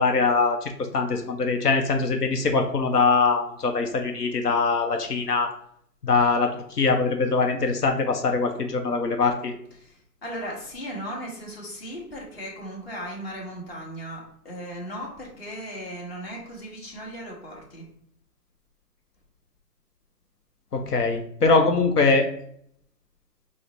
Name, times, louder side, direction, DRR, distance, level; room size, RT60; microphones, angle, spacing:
voice 1, 0.0-5.5 6.0-9.5 20.7-22.3, left 4 dB, 65° left, 4 dB, 0.8 m, -22 dB
voice 2, 9.7-17.8, equal, 35° left, -2 dB, 1.2 m, -37 dB
5.0 x 2.1 x 3.9 m, 0.67 s
hypercardioid pair, 170°, 49 cm